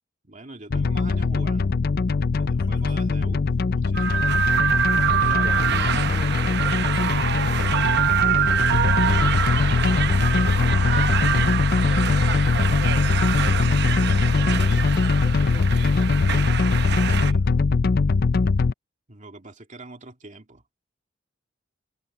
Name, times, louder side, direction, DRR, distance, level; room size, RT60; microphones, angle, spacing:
voice 1, 0.2-1.8 2.3-6.2 7.8-15.0 15.5-17.4 19.1-20.6, right 2 dB, 40° right, 2.5 m, -44 dB
sound 1, 0.7-18.7, left 4 dB, 50° left, 0.5 m, -21 dB
voice 2, 2.6-3.1 5.1-7.7 14.3-14.8 15.2-16.2 17.2-17.7, left 1 dB, 25° left, 3.6 m, -44 dB
sound 2, 3.9-17.3, right 8 dB, 60° right, 0.9 m, -25 dB
head